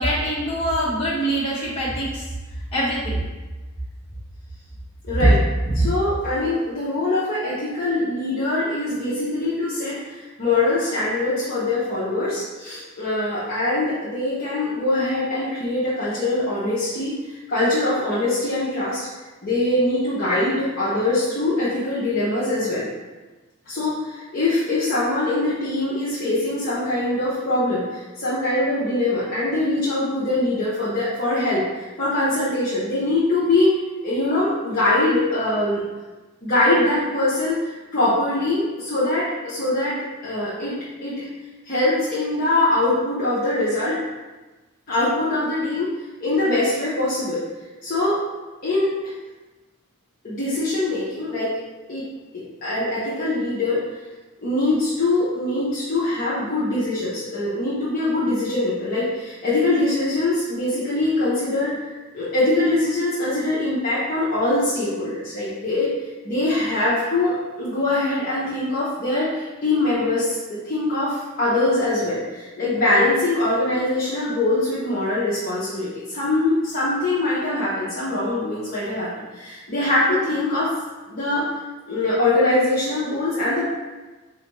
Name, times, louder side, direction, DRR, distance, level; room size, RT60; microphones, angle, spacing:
voice 1, 0.0-2.2 2.7-3.2, right 1 dB, 25° left, -9 dB, 1.1 m, -24 dB
voice 2, 5.0-5.4 5.7-19.1 19.4-22.9 23.7-33.7 34.0-35.8 36.4-40.0 40.2-41.3 41.6-44.0 44.9-45.9 46.2-47.4 47.8-48.2 48.6-48.9 50.2-51.5 51.9-52.1 52.3-53.8 54.4-61.8 62.1-65.9 66.2-80.7 81.1-81.5 81.9-83.7, left 2 dB, 40° left, -10 dB, 0.7 m, -23 dB
4.3 x 2.4 x 3.0 m, 1.2 s
head